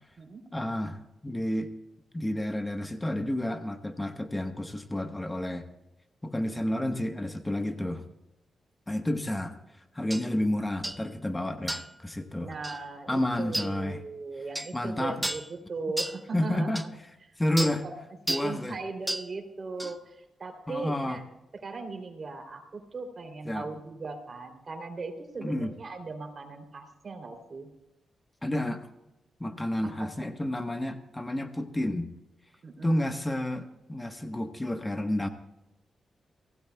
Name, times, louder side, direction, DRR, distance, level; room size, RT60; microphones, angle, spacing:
voice 1, 0.5-1.7 2.1-5.7 6.2-8.0 8.9-12.5 13.1-14.0 14.7-15.2 16.3-16.8 17.4-17.8 18.3-18.7 20.7-21.2 23.4-23.7 25.4-25.7 28.4-28.9 29.4-32.1 32.8-35.3, left 1 dB, 20° left, 7 dB, 1.3 m, -30 dB
sound 1, 10.1-10.2 10.8-11.0 11.7-12.0 12.6-12.8 13.5-13.7 14.5-14.7 15.2-15.5 16.0-16.2 16.7-16.9 17.6-17.8 18.3-18.5 19.1-19.3 19.8-19.9, right 1 dB, 10° right, 0.9 m, -32 dB
voice 2, 12.4-16.7 17.6-17.9 18.3-21.2 21.6-27.7 29.8-30.3 32.6-33.1, right 3 dB, 50° right, 5 dB, 3.2 m, -38 dB
24.0 x 16.5 x 2.3 m, 0.93 s
hypercardioid pair, 40°, 0 cm